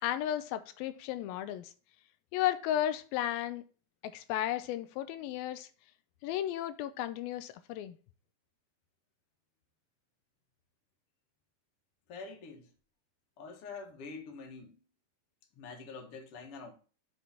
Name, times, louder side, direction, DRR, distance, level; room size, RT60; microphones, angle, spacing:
voice 1, 0.0-1.7 2.3-3.6 4.0-5.7 6.2-8.0, left 12 dB, 85° left, 2.5 m, -34 dB
voice 2, 12.1-12.7 13.4-14.8 15.5-16.7, left 4 dB, 50° left, 2.1 m, -46 dB
7.1 x 4.7 x 5.6 m
omnidirectional pair, 4.1 m